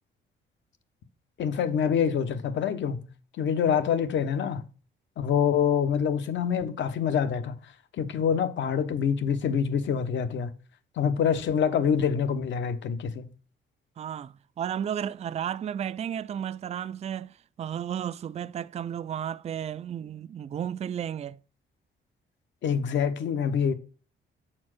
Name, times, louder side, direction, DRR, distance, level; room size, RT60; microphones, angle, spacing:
voice 1, 1.4-3.1 3.4-4.6 5.2-7.6 8.0-10.5 11.0-13.3 22.6-23.7, left 7 dB, 70° left, 1.0 m, -26 dB
voice 2, 14.0-21.4, right 9 dB, 35° right, 0.3 m, -33 dB
7.4 x 4.4 x 6.2 m
cardioid pair, 90°, 20 cm